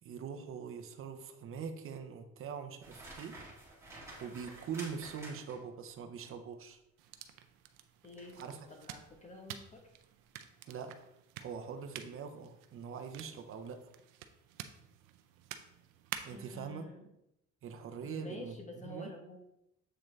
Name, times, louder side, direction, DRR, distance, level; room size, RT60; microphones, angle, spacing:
voice 1, 0.0-3.4 4.2-6.8 8.4-8.7 10.7-11.1 11.4-13.9 16.2-16.9 17.6-18.6 18.8-19.1, right 6 dB, 45° right, 7 dB, 0.8 m, -43 dB
sound 1, 2.8-5.8 8.2-8.5 9.0-9.2, right 2 dB, 10° right, 2.0 m, -50 dB
sound 2, 7.0-16.6, right 10 dB, 85° right, 0.6 m, -50 dB
voice 2, 8.0-9.8 16.3-17.1 18.0-19.4, left 2 dB, 25° left, 3 dB, 1.1 m, -49 dB
7.7 x 3.7 x 3.3 m, 0.83 s
cardioid pair, 125°, 31 cm